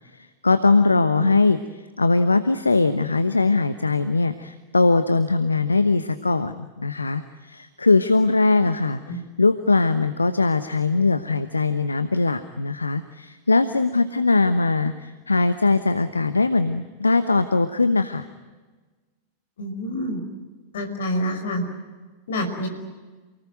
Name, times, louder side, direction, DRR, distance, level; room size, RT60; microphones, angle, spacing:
voice 1, 0.1-18.3, left 3 dB, 80° left, 11 dB, 1.0 m, -21 dB
voice 2, 19.6-20.2 20.7-21.6 22.3-22.7, equal, 65° left, 6 dB, 5.4 m, -27 dB
28.0 x 19.5 x 9.3 m, 1.3 s
figure-of-eight pair, 90°, 0 cm